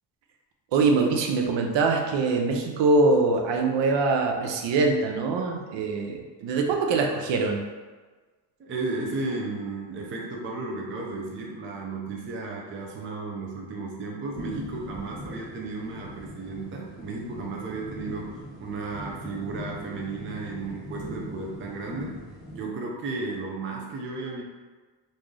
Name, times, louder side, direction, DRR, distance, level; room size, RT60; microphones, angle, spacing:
voice 1, 0.7-7.6, right 3 dB, 70° right, 2 dB, 0.6 m, -23 dB
voice 2, 8.6-22.2 22.6-24.4, right 3 dB, 30° right, -1 dB, 0.4 m, -34 dB
sound 1, 14.3-22.7, equal, 10° left, 0.9 m, -41 dB
3.1 x 2.6 x 3.6 m, 1.3 s
cardioid pair, 155°, 45 cm